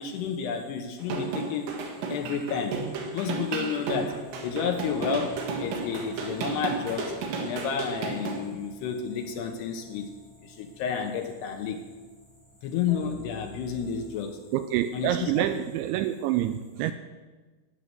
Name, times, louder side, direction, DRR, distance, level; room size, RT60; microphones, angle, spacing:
voice 1, 0.0-1.7 2.1-2.8 3.1-10.1 10.4-11.8 12.6-14.4 14.9-15.6, left 6 dB, 70° left, 5 dB, 2.7 m, -31 dB
sound 1, 1.0-8.4, right 4 dB, 65° right, 4.0 m, -33 dB
sound 2, 4.2-14.2, right 1 dB, 40° right, 0.6 m, -48 dB
voice 2, 14.5-16.9, right 12 dB, 85° right, 10 dB, 2.6 m, -27 dB
13.5 x 9.8 x 7.6 m, 1.3 s
omnidirectional pair, 5.7 m